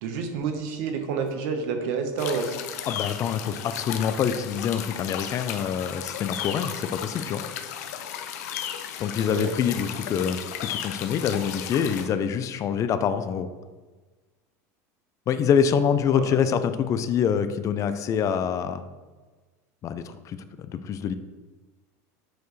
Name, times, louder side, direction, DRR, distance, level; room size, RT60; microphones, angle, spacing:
voice 1, 0.0-2.5 9.2-9.5 16.1-16.3, right 5 dB, 70° right, 5 dB, 1.1 m, -29 dB
sound 1, 2.2-12.1, left 9 dB, 80° left, 0.6 m, -35 dB
voice 2, 2.9-7.4 9.0-13.5 15.3-18.9 19.8-20.4 20.7-21.1, left 7 dB, 35° left, 11 dB, 0.5 m, -25 dB
8.0 x 4.6 x 3.2 m, 1.3 s
supercardioid pair, 115°, 9 cm